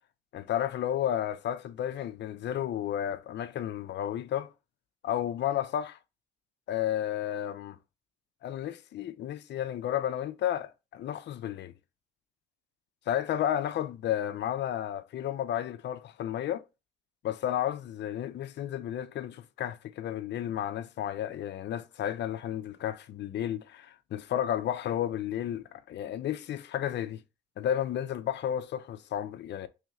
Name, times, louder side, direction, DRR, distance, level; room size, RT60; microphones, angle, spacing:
voice 1, 0.3-4.5 5.0-6.0 6.7-7.8 8.4-11.7 13.1-16.6 17.2-27.2 27.6-29.7, left 10 dB, 60° left, 0.5 m, -32 dB
3.1 x 3.0 x 3.6 m
cardioid pair, 90°, 20 cm